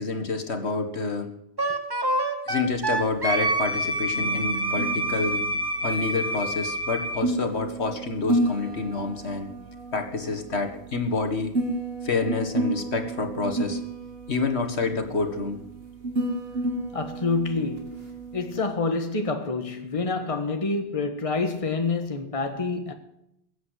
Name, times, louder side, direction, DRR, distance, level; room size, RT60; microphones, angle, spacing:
voice 1, 0.0-1.3 2.5-5.5 5.8-9.5 9.9-11.6 12.0-13.8 14.3-15.6, left 3 dB, 75° left, 2.0 m, -28 dB
Wind instrument woodwind instrument, 1.6-7.2, right 1 dB, 20° right, 1.2 m, -27 dB
sound 1, 2.5-18.6, right 1 dB, 65° right, 2.3 m, -32 dB
voice 2, 16.9-22.9, left 3 dB, 30° left, 1.5 m, -27 dB
21.0 x 8.3 x 8.2 m
omnidirectional pair, 1.1 m